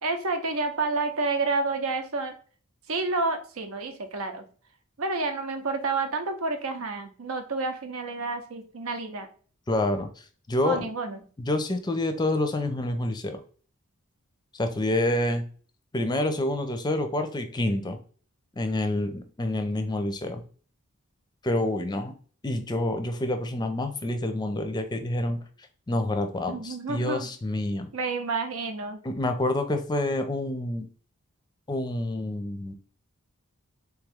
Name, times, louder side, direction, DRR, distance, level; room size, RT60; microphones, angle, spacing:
voice 1, 0.0-2.3 2.9-4.4 5.0-9.3 10.6-11.2 26.5-27.3 27.9-29.0, right 3 dB, 70° right, 7 dB, 0.7 m, -29 dB
voice 2, 9.7-10.1 10.5-10.9 11.4-13.4 14.5-15.4 15.9-18.0 18.6-20.4 21.4-22.1 22.4-25.4 25.9-27.9 29.0-30.9 31.7-32.7, left 1 dB, 20° left, 7 dB, 0.5 m, -27 dB
3.6 x 3.0 x 3.5 m, 0.42 s
head